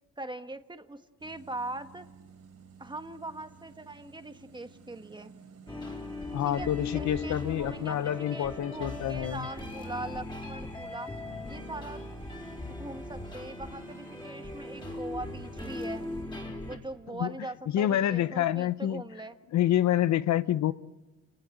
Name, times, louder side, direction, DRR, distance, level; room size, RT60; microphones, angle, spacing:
voice 1, 0.2-2.1 2.8-5.3 6.4-6.7 6.9-11.1 11.4-12.1 12.7-16.0 16.6-19.4, right 2 dB, 15° right, 8 dB, 1.6 m, -41 dB
sound 1, 1.2-16.3, right 6 dB, 60° right, 3.5 m, -54 dB
sound 2, 5.7-16.8, left 2 dB, 15° left, 4.6 m, -39 dB
voice 2, 6.3-9.5 17.1-17.3 17.7-19.0 19.5-20.7, left 12 dB, 65° left, 15 dB, 0.8 m, -27 dB
29.5 x 19.0 x 7.9 m, 1.1 s
cardioid pair, 90°, 30 cm